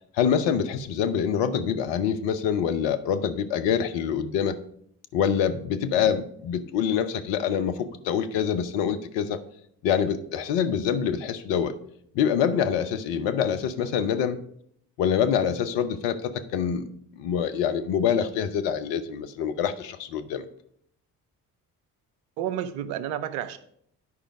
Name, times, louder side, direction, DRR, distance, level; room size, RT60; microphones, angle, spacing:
voice 1, 0.1-4.6 5.1-9.4 9.8-11.8 12.1-14.4 15.0-20.4, left 8 dB, 65° left, 9 dB, 0.8 m, -25 dB
voice 2, 22.4-23.6, right 10 dB, 70° right, 13 dB, 0.8 m, -31 dB
9.7 x 5.0 x 4.8 m, 0.68 s
figure-of-eight pair, 45°, 47 cm